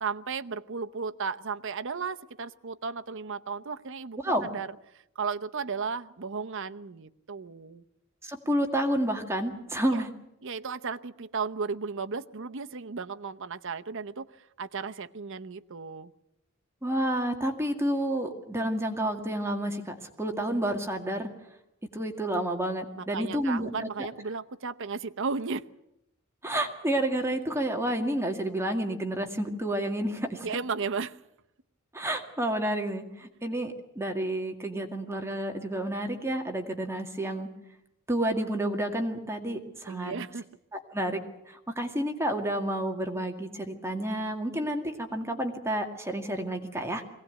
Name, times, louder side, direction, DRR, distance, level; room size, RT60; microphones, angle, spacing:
voice 1, 0.0-4.7 5.2-7.8 9.9-10.0 10.4-16.1 23.0-25.7 30.4-31.2 39.9-40.5, right 5 dB, 65° right, 9 dB, 0.8 m, -35 dB
voice 2, 8.2-10.1 16.8-21.3 21.8-23.9 26.4-30.5 31.9-37.5 38.1-40.2 40.7-47.0, right 1 dB, 15° right, 4 dB, 2.0 m, -30 dB
22.0 x 17.5 x 9.2 m, 0.85 s
head